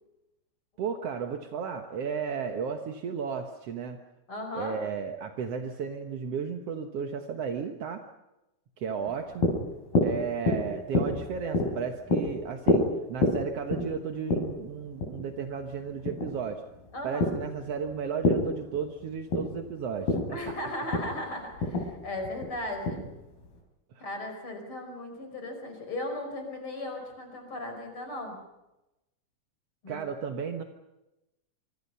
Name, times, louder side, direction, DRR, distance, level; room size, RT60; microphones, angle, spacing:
voice 1, 0.8-4.0 4.5-8.0 8.8-9.5 10.0-16.6 17.0-20.5 23.9-24.0 29.9-30.6, right 6 dB, 60° right, 5 dB, 1.7 m, -34 dB
voice 2, 4.3-4.8 16.9-17.3 20.3-23.1 24.0-28.4 29.8-30.0, left 1 dB, 35° left, 4 dB, 5.8 m, -36 dB
sound 1, 9.1-23.6, left 2 dB, 70° left, 6.1 m, -30 dB
26.0 x 25.5 x 5.6 m, 0.95 s
omnidirectional pair, 4.4 m